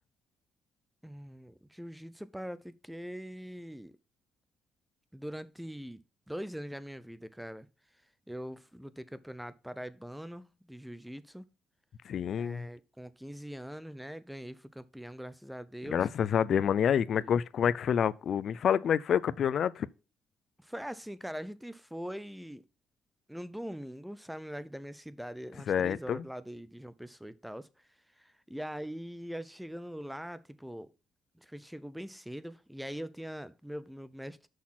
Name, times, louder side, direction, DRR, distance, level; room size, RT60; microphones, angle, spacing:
voice 1, 1.0-4.0 5.1-7.7 8.3-11.5 12.3-16.1 17.2-17.3 20.6-22.6 23.3-27.7 28.2-30.9 31.3-34.5, equal, 5° right, 0.7 m, -42 dB
voice 2, 12.1-12.7 15.9-19.9 25.7-26.2, left 8 dB, 60° left, 0.4 m, -28 dB
6.4 x 5.8 x 6.0 m
cardioid pair, 90°, 0 cm